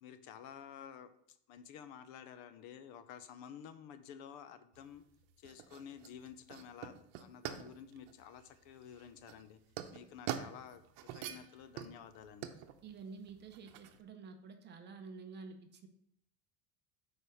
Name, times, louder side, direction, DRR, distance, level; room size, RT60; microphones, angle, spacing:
voice 1, 0.0-5.0 5.4-9.6 9.9-12.5, left 8 dB, 60° left, 11 dB, 0.7 m, -52 dB
sound 1, 4.7-14.0, right 10 dB, 65° right, 0.8 m, -46 dB
voice 2, 12.8-15.9, right 4 dB, 25° right, 6 dB, 0.6 m, -50 dB
6.4 x 4.8 x 5.4 m, 0.71 s
cardioid pair, 160°, 40 cm